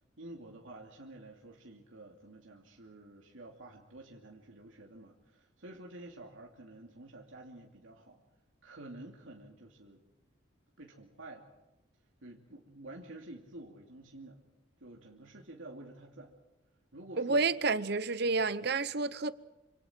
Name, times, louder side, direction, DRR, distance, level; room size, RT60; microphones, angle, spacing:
voice 1, 0.2-8.2 8.6-10.0 10.8-11.5 12.2-14.4 14.8-16.3 16.9-17.4 18.2-18.4, right 2 dB, 80° right, 2.8 m, -50 dB
voice 2, 17.2-19.3, right 3 dB, 55° right, 0.8 m, -30 dB
27.0 x 26.5 x 4.5 m
head